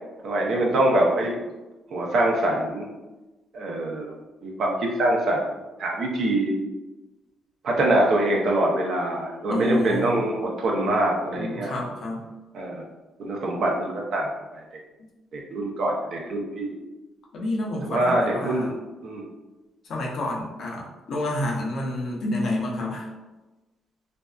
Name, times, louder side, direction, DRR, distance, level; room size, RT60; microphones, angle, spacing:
voice 1, 0.2-1.4 1.9-2.9 3.5-4.1 4.4-5.5 5.8-6.6 7.6-11.7 12.5-12.8 13.2-14.6 15.3-16.8 17.8-18.8 19.0-19.2, right 1 dB, 65° right, -1 dB, 0.5 m, -24 dB
voice 2, 9.5-10.2 11.4-12.3 15.0-15.1 17.3-18.7 19.9-23.1, left 1 dB, 65° left, -2 dB, 0.6 m, -29 dB
2.6 x 2.2 x 2.3 m, 1.1 s
cardioid pair, 90°, 0 cm